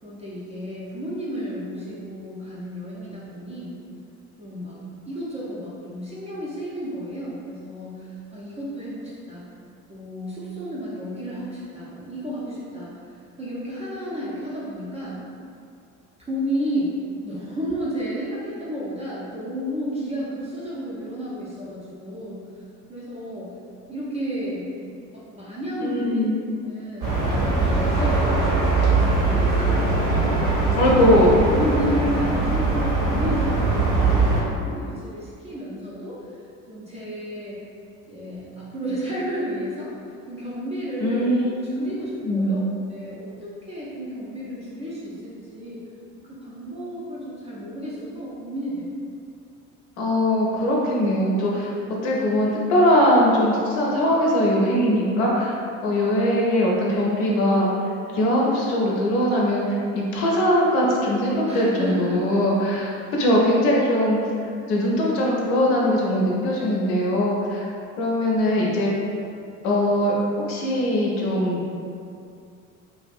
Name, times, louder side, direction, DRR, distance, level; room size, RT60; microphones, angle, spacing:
voice 1, 0.0-3.8 4.4-9.4 9.9-13.0 13.4-15.2 16.2-16.9 17.2-22.5 22.9-23.5 23.9-24.7 25.1-26.3 26.6-27.2 27.6-30.4 31.5-36.2 36.7-37.6 38.1-39.9 40.3-41.3 41.7-42.6 42.9-43.3 43.7-45.8 46.2-48.9 61.5-62.4, equal, 15° right, -8 dB, 0.5 m, -32 dB
voice 2, 25.8-26.4 30.7-31.5 41.0-41.6 42.2-42.6 50.0-51.7 52.0-57.7 58.1-64.2 64.6-67.7 68.0-68.9 69.6-70.1 70.5-71.6, equal, 55° left, -4 dB, 0.6 m, -21 dB
sound 1, 27.0-34.4, right 3 dB, 80° right, 0.8 m, -21 dB
2.5 x 2.5 x 2.3 m, 2.4 s
figure-of-eight pair, 60°, 43 cm